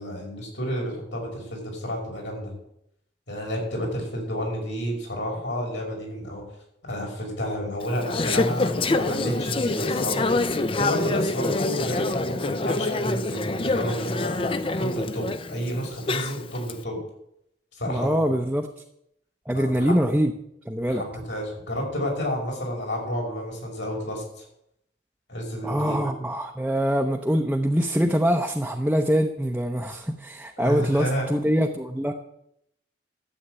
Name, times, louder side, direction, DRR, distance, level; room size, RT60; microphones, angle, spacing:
voice 1, 0.0-2.5 3.3-6.4 6.8-10.3 10.7-14.4 14.8-17.0 17.8-18.3 19.5-20.0 20.9-24.4 25.3-26.0 30.6-31.3, equal, 75° left, 0 dB, 5.6 m, -30 dB
Conversation / Chatter, 7.8-16.7, left 2 dB, 30° left, 0.5 m, -26 dB
voice 2, 17.9-18.7 19.5-20.3 20.6-21.0 25.6-32.1, equal, 5° right, 2 dB, 0.7 m, -24 dB
13.0 x 8.0 x 8.9 m, 0.78 s
head